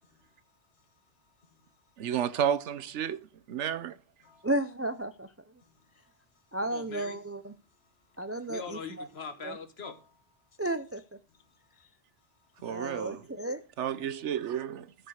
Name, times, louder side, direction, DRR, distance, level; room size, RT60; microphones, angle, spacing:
voice 1, 0.0-2.0 4.2-4.5 5.6-7.2 7.7-10.6 11.3-11.8 12.2-12.9, left 5 dB, 60° left, 1.6 m, -47 dB
voice 2, 2.0-3.2 3.5-4.0 12.6-13.2 13.8-14.9, right 9 dB, 80° right, 1.0 m, -31 dB
voice 3, 4.4-5.3 6.5-7.5 8.2-9.1 9.4-9.5 10.6-11.2 12.7-13.6, right 1 dB, 25° right, 0.3 m, -33 dB
14.0 x 5.1 x 6.4 m
omnidirectional pair, 1.2 m